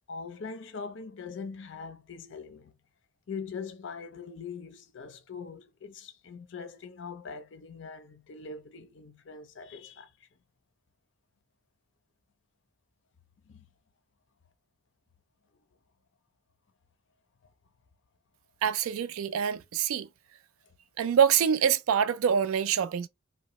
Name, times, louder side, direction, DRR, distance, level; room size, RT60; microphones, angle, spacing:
voice 1, 0.1-2.7 3.3-10.1 13.5-13.6, left 5 dB, 60° left, 0.5 m, -42 dB
voice 2, 18.6-20.1 21.0-23.1, right 8 dB, 80° right, 0.4 m, -25 dB
2.7 x 2.1 x 3.0 m
head